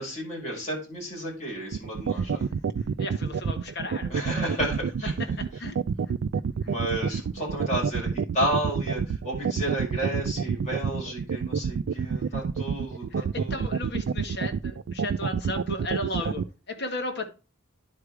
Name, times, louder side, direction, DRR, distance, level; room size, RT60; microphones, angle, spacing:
voice 1, 0.0-2.5 4.0-5.1 6.6-13.6 16.2-16.3, right 1 dB, 35° left, 5.9 m, -32 dB
sound 1, 1.7-16.4, right 6 dB, 65° right, 0.3 m, -27 dB
voice 2, 3.0-4.4 5.4-5.8 7.1-7.2 11.9-12.1 13.2-17.3, left 1 dB, 55° left, 1.7 m, -35 dB
10.5 x 4.9 x 4.8 m
head